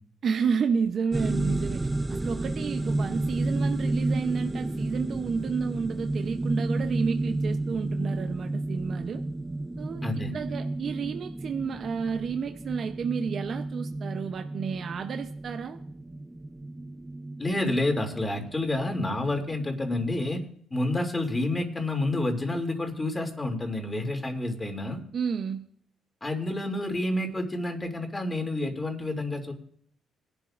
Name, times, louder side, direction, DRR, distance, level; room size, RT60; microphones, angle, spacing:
voice 1, 0.2-9.2 9.8-15.8 25.1-25.7, right 6 dB, 55° right, 0.7 m, -31 dB
sound 1, 1.1-20.5, right 2 dB, 15° right, 0.5 m, -32 dB
voice 2, 10.0-10.3 17.4-20.4 20.7-25.0 26.2-29.5, left 2 dB, 20° left, 2.6 m, -29 dB
21.0 x 11.5 x 2.5 m
cardioid pair, 90°, 0 cm